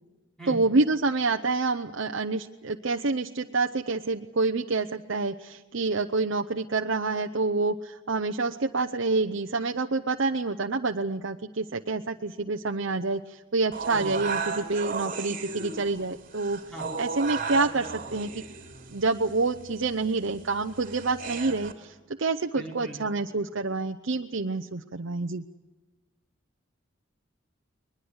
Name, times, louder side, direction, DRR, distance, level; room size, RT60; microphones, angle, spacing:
voice 1, 0.5-16.6 17.0-18.4 18.9-25.4, right 3 dB, 65° right, 4 dB, 0.8 m, -27 dB
sound 1, 13.7-21.7, right 5 dB, 45° right, 3.2 m, -35 dB
voice 2, 22.6-23.0, right 1 dB, 5° left, -1 dB, 5.3 m, -39 dB
21.5 x 21.5 x 8.1 m, 1.2 s
head